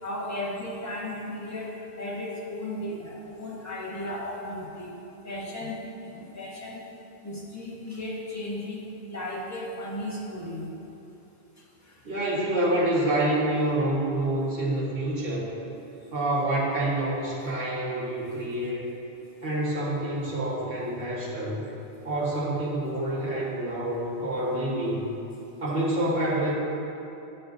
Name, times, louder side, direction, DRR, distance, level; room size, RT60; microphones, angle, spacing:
voice 1, 0.0-4.9 5.2-6.8 7.2-10.7 11.9-12.0, left 1 dB, 15° left, -6 dB, 0.9 m, -35 dB
voice 2, 12.0-15.5 16.1-18.9 19.4-21.6 22.0-25.1 25.6-26.5, right 1 dB, 65° right, -6 dB, 1.6 m, -27 dB
9.2 x 4.4 x 2.6 m, 2.9 s
omnidirectional pair, 1.0 m